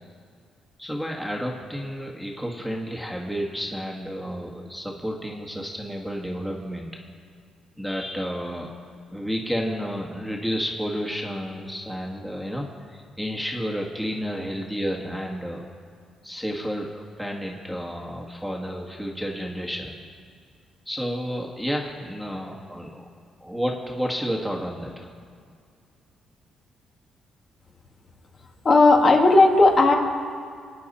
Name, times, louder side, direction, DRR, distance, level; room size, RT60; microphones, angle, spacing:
voice 1, 0.8-6.9 7.8-8.7 9.1-15.7 16.2-20.0 20.9-23.0 23.4-25.1, equal, 5° left, -1 dB, 1.8 m, -31 dB
voice 2, 28.6-29.9, left 2 dB, 45° left, 1 dB, 2.3 m, -15 dB
25.5 x 9.4 x 4.3 m, 2.2 s
cardioid pair, 90°, 0 cm